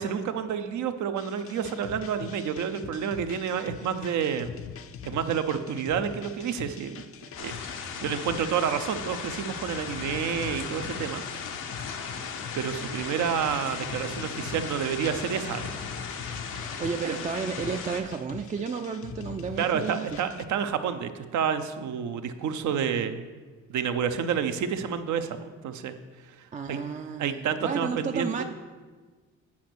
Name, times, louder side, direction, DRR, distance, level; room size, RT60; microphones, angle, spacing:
voice 1, 0.0-4.5 5.0-7.0 7.4-11.2 12.5-15.8 17.0-17.2 19.6-23.3 23.7-25.9 26.4-26.8 27.2-28.4, right 7 dB, 75° right, 9 dB, 0.7 m, -29 dB
sound 1, 1.2-20.4, left 7 dB, 50° left, 0.6 m, -43 dB
sound 2, 7.4-18.0, left 6 dB, 90° left, 0.9 m, -37 dB
voice 2, 16.8-20.1 26.5-28.4, right 5 dB, 25° right, 5 dB, 0.4 m, -32 dB
8.6 x 5.1 x 6.1 m, 1.4 s
cardioid pair, 90°, 30 cm